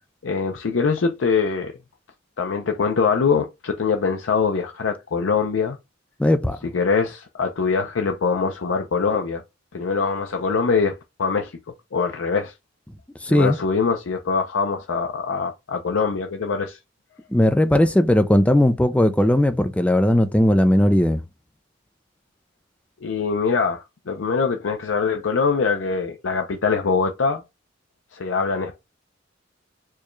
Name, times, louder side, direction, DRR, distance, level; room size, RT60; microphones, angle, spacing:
voice 1, 0.2-1.7 2.4-5.8 6.7-9.4 9.7-11.6 11.9-12.5 13.3-16.8 23.0-27.4 28.1-28.8, left 5 dB, 75° left, 0.5 m, -23 dB
voice 2, 6.2-6.6 13.2-13.6 17.3-21.2, left 1 dB, 5° left, 0.4 m, -18 dB
4.5 x 2.3 x 3.0 m
head